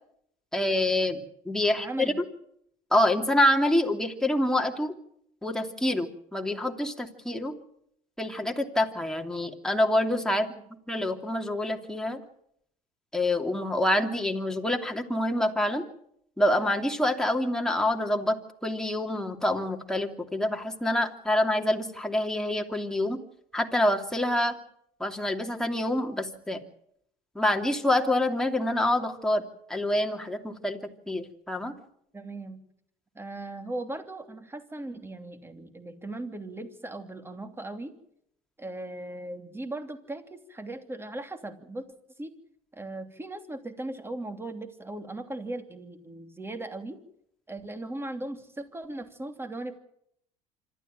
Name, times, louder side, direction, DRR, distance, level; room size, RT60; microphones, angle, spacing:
voice 1, 0.5-2.1 2.9-4.9 5.4-7.5 8.2-10.5 10.9-12.2 13.1-15.8 16.4-23.2 23.5-24.6 25.0-26.6 27.3-29.4 29.7-31.7, left 1 dB, 5° left, 2 dB, 2.9 m, -26 dB
voice 2, 1.8-2.2 10.3-10.6 32.1-32.6 33.1-37.9 38.6-41.9 42.2-42.3 42.7-47.0 47.5-49.8, right 2 dB, 15° right, 7 dB, 3.0 m, -38 dB
26.0 x 13.0 x 9.0 m, 0.72 s
supercardioid pair, 85°, 18 cm